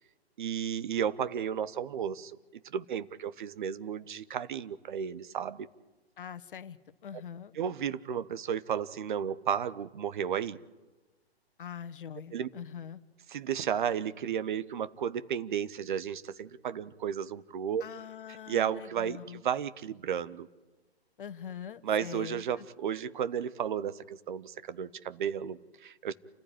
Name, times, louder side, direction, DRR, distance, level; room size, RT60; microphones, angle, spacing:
voice 1, 0.4-2.4 2.7-5.7 7.6-10.6 12.3-12.5 13.3-17.8 18.5-20.5 21.8-26.1, right 8 dB, 50° right, 14 dB, 1.2 m, -33 dB
voice 2, 6.2-7.5 11.6-13.0 17.8-19.4 21.2-22.7, left 8 dB, 55° left, 12 dB, 1.4 m, -43 dB
28.5 x 15.0 x 9.9 m, 1.2 s
figure-of-eight pair, 125°, 32 cm